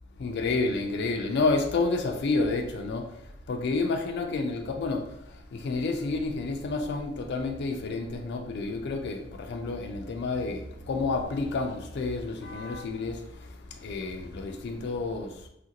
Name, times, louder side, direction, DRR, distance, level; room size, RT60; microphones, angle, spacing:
voice 1, 0.2-3.1 3.5-5.0 5.5-13.2 13.8-15.5, left 3 dB, 55° left, 3 dB, 0.4 m, -29 dB
2.8 x 2.5 x 2.8 m, 0.82 s
head